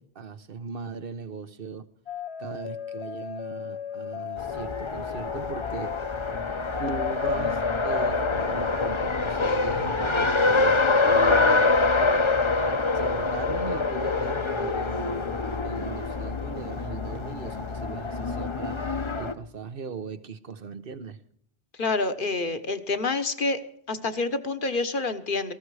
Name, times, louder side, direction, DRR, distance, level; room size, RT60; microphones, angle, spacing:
voice 1, 0.0-1.9 2.4-6.1 6.8-11.8 12.9-18.8 19.2-21.2, right 5 dB, 60° right, 1.2 m, -38 dB
sound 1, 2.1-9.1, left 8 dB, 80° left, 1.1 m, -37 dB
Race car auto racing, 4.4-19.3, left 3 dB, 30° left, 0.9 m, -25 dB
voice 2, 21.8-23.6 23.9-25.5, left 3 dB, 55° left, 1.4 m, -27 dB
18.5 x 15.5 x 4.8 m
omnidirectional pair, 1.1 m